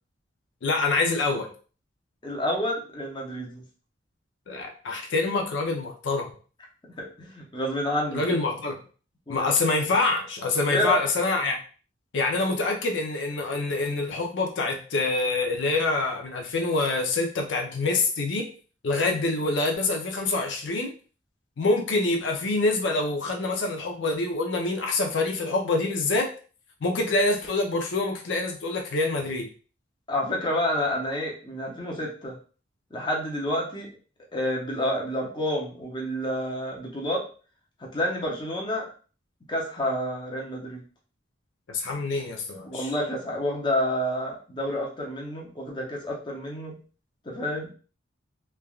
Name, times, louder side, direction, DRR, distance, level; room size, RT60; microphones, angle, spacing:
voice 1, 0.6-1.5 4.5-6.3 8.1-8.8 9.3-11.6 12.1-18.5 18.8-20.9 21.6-26.3 26.8-29.5 41.7-42.9, left 3 dB, 75° left, 2 dB, 0.5 m, -26 dB
voice 2, 2.2-3.6 7.0-8.2 9.3-9.5 10.7-10.9 30.1-32.4 32.9-33.9 34.3-37.2 37.8-38.9 39.5-40.8 42.6-46.7 47.2-47.7, left 1 dB, 25° left, -2 dB, 0.7 m, -29 dB
3.2 x 2.2 x 2.3 m, 0.38 s
head